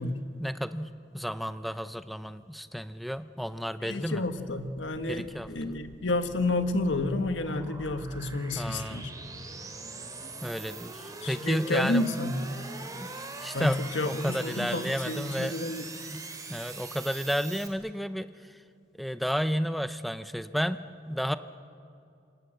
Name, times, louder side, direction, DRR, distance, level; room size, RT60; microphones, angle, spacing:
voice 1, 0.4-4.2 5.1-5.8 8.5-9.0 10.4-12.0 12.5-12.6 13.1-13.8 14.0-15.6 16.1-16.2 16.5-18.3 19.0-21.4, equal, ahead, 11 dB, 0.6 m, -32 dB
voice 2, 3.8-9.1 11.2-12.4 13.5-15.9, left 2 dB, 90° left, 8 dB, 1.6 m, -30 dB
sound 1, 5.0-17.7, right 3 dB, 20° right, 2.7 m, -43 dB
27.0 x 27.0 x 7.8 m, 2.5 s
head